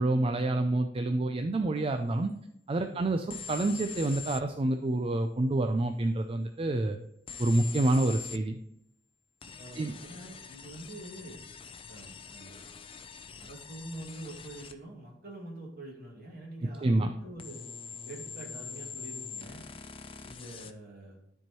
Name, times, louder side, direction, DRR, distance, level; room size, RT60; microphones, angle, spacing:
voice 1, 0.0-2.3 2.7-7.0 7.4-8.6 9.8-10.0 16.8-17.1, right 2 dB, 30° right, 6 dB, 0.4 m, -28 dB
sound 1, 3.3-4.5 7.3-8.4 9.4-14.8 17.4-20.7, left 5 dB, 30° left, 0.5 m, -44 dB
voice 2, 9.6-11.4 11.9-12.6 13.4-17.6 18.0-19.6 20.2-21.2, right 1 dB, 55° right, -2 dB, 2.3 m, -45 dB
13.0 x 4.5 x 3.0 m, 0.76 s
head